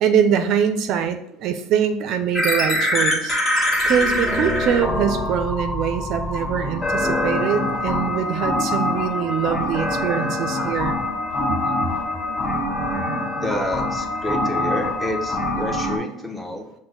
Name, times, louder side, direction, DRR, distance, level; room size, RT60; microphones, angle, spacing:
voice 1, 0.0-3.4 3.8-11.0, right 8 dB, 60° right, 8 dB, 0.4 m, -23 dB
sound 1, 2.3-16.0, left 1 dB, 35° left, 1.4 m, -24 dB
voice 2, 13.4-16.7, equal, 10° left, 2 dB, 0.8 m, -29 dB
5.9 x 2.1 x 3.8 m, 0.79 s
supercardioid pair, 85°, 0 cm